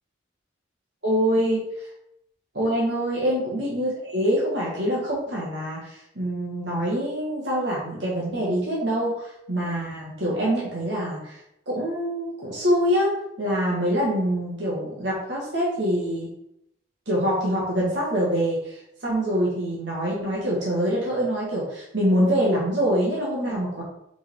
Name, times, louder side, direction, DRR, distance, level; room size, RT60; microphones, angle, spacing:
voice 1, 1.0-1.6 2.5-11.4 11.7-16.3 17.1-23.8, equal, 65° right, -6 dB, 1.9 m, -25 dB
5.9 x 5.3 x 3.8 m, 0.78 s
head